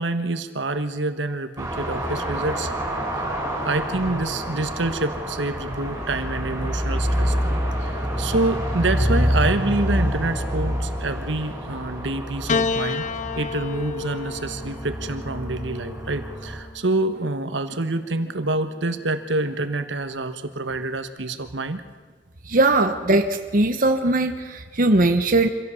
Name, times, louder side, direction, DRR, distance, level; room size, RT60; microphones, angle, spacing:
voice 1, 0.0-2.7 3.6-13.0 13.4-21.8, right 2 dB, 70° right, 9 dB, 1.3 m, -27 dB
sound 1, 1.6-16.6, equal, 15° right, 6.4 m, -27 dB
Piano, 12.5-17.0 18.0-18.8, left 4 dB, 40° left, 0.7 m, -30 dB
voice 2, 22.5-25.5, right 2 dB, 45° right, 6 dB, 1.1 m, -20 dB
25.0 x 16.5 x 7.1 m, 1.4 s
head